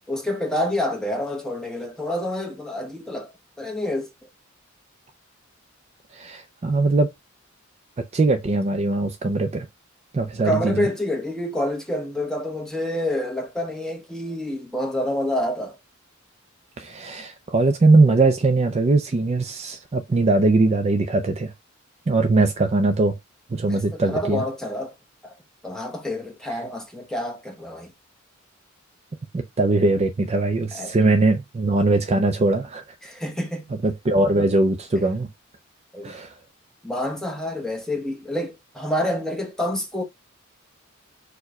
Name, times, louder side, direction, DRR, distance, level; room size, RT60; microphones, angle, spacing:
voice 1, 0.1-3.3 3.6-4.1 10.4-15.8 23.6-24.9 25.2-25.3 25.6-27.9 30.7-30.9 33.0-33.7 35.0-35.1 35.9-36.1 36.8-40.0, left 1 dB, 5° left, 0.9 m, -28 dB
voice 2, 6.1-7.1 8.1-9.7 10.1-10.9 16.8-21.5 22.1-23.2 23.5-24.4 29.3-32.8 33.8-35.3 36.0-36.3, right 2 dB, 30° right, 0.4 m, -20 dB
4.5 x 2.2 x 4.6 m
head